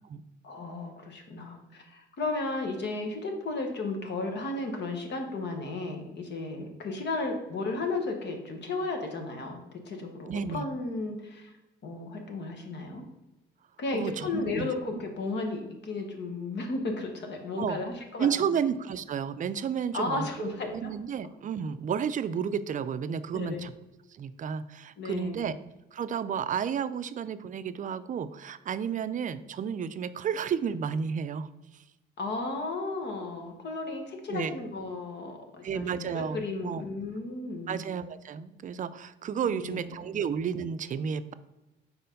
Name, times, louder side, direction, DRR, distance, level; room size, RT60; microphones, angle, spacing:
voice 1, 0.4-11.5 11.8-13.1 13.8-18.5 19.9-20.9 23.3-23.7 25.0-25.5 32.2-37.8 39.5-39.9, left 3 dB, 60° left, 4 dB, 1.1 m, -34 dB
voice 2, 10.3-10.7 13.9-14.7 17.6-17.8 18.2-23.7 24.1-25.5 25.9-31.5 34.3-34.5 35.6-36.8 37.7-41.3, right 7 dB, 40° right, 13 dB, 0.4 m, -32 dB
4.4 x 4.3 x 5.2 m, 0.98 s
cardioid pair, 90°, 20 cm